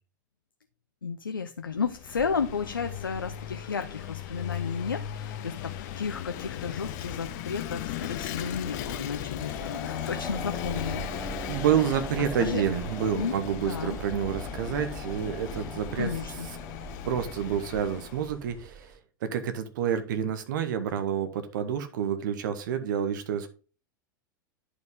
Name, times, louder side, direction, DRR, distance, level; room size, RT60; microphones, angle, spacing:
voice 1, 1.0-11.1 11.4-11.7 12.2-12.6 13.1-14.0 15.9-16.5, left 5 dB, 85° left, 8 dB, 0.6 m, -33 dB
Vehicle / Engine, 1.7-18.4, left 11 dB, 55° left, 0.9 m, -37 dB
sound 1, 2.1-18.9, right 4 dB, 25° right, 3.3 m, -52 dB
sound 2, 9.3-18.6, right 3 dB, 10° right, 0.4 m, -42 dB
voice 2, 11.5-16.1 17.0-18.9 19.2-23.5, right 8 dB, 65° right, 9 dB, 1.0 m, -28 dB
10.5 x 4.9 x 3.7 m, 0.36 s
figure-of-eight pair, 90°, 11 cm